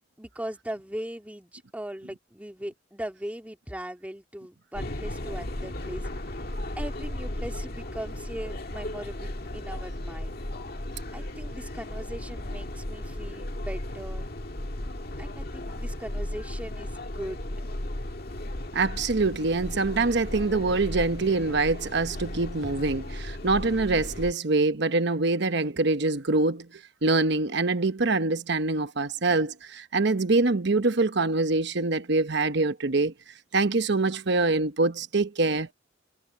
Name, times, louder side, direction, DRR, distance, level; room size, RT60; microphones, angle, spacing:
voice 1, 0.2-6.0 6.3-6.4 6.8-10.4 11.1-14.3 15.2-17.4, right 1 dB, 5° right, 2.2 m, -39 dB
sound 1, 4.7-24.3, left 1 dB, 50° left, 2.0 m, -35 dB
voice 2, 18.7-35.7, right 3 dB, 60° right, 1.0 m, -25 dB
head